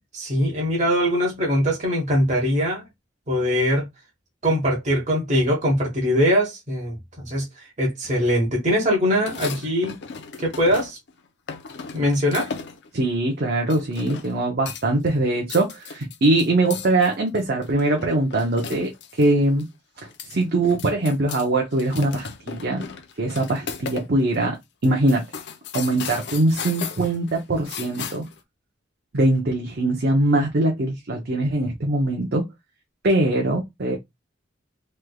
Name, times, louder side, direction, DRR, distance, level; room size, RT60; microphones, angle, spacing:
voice 1, 0.1-2.8 3.3-3.9 4.4-9.9 10.4-11.0 11.9-12.5, equal, 40° right, 1.2 m, -22 dB
sound 1, 9.1-11.1 11.5-12.9 13.7-14.4 14.7-15.1 15.4-19.3 19.6-19.7 20.0-21.5 21.7-24.1 24.3-24.4 24.8-28.4, left 6 dB, 65° left, 0.6 m, -36 dB
voice 2, 12.9-19.6 20.3-22.8 23.2-24.6 24.8-25.2 25.7-28.2 29.1-32.5 33.0-34.0, right 2 dB, 55° right, 0.7 m, -22 dB
3.4 x 3.2 x 2.3 m
head